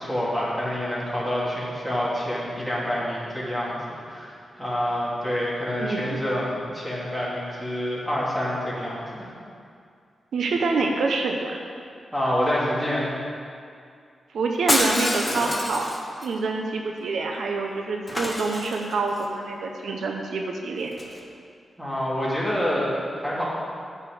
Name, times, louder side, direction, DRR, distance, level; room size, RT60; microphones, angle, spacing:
voice 1, 0.0-3.8 4.1-9.3 12.1-13.1 21.8-23.4, equal, 5° right, -7 dB, 2.7 m, -27 dB
voice 2, 5.8-6.2 10.3-11.6 14.3-15.9 16.2-20.9, right 3 dB, 85° right, 2 dB, 0.8 m, -26 dB
Shatter, 14.7-16.3 18.1-19.2 20.9-21.2, left 1 dB, 15° left, 1.0 m, -26 dB
9.8 x 4.8 x 7.9 m, 2.3 s
wide cardioid pair, 135°, 0 cm